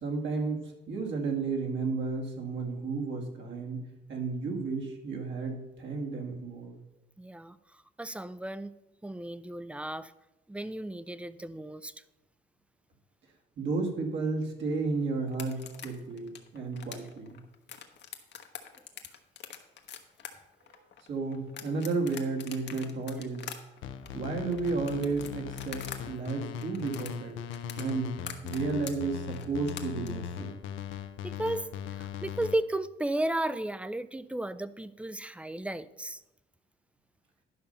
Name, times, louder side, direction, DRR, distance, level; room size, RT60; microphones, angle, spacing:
voice 1, 0.0-6.7 13.6-17.4 20.7-20.8 21.1-23.5 24.1-27.4 27.8-28.1 28.4-30.5, right 4 dB, 70° right, 0 dB, 2.2 m, -33 dB
voice 2, 7.2-8.7 9.0-10.1 10.5-11.9 31.2-36.2, right 1 dB, 5° right, 16 dB, 0.4 m, -34 dB
sound 1, 15.3-26.0 26.2-30.1, left 8 dB, 60° left, 1.1 m, -44 dB
sound 2, 23.8-32.5, left 8 dB, 85° left, 0.7 m, -39 dB
11.0 x 5.5 x 5.4 m, 0.97 s
cardioid pair, 90°, 20 cm